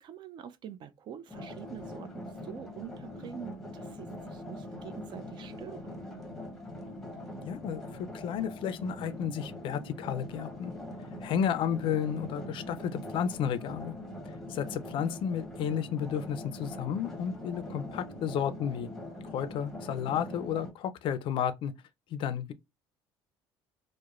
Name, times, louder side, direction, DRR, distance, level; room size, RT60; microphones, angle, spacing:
voice 1, 0.0-6.1 17.6-17.8, right 9 dB, 50° right, 0.4 m, -45 dB
sound 1, 1.3-20.7, left 1 dB, 5° left, 0.8 m, -43 dB
voice 2, 7.4-10.7 11.2-13.9 14.5-18.9 19.2-21.7 22.1-22.5, left 8 dB, 55° left, 0.4 m, -32 dB
sound 2, 8.0-19.4, right 2 dB, 90° right, 1.2 m, -53 dB
2.9 x 2.1 x 2.4 m
cardioid pair, 110°, 10 cm